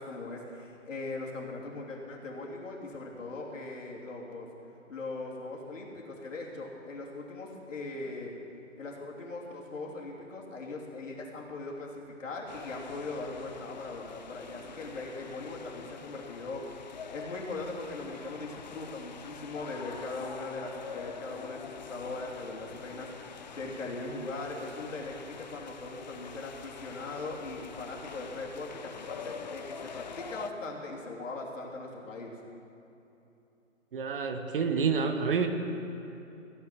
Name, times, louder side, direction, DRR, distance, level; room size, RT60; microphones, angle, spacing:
voice 1, 0.0-4.5 4.9-8.3 8.8-32.3, left 2 dB, 70° left, -2 dB, 3.0 m, -40 dB
sound 1, 12.5-30.5, left 6 dB, 35° left, 0.5 m, -45 dB
voice 2, 33.9-35.5, right 5 dB, 45° right, 6 dB, 1.1 m, -28 dB
16.0 x 8.1 x 7.5 m, 2.9 s
hypercardioid pair, 150°, 40 cm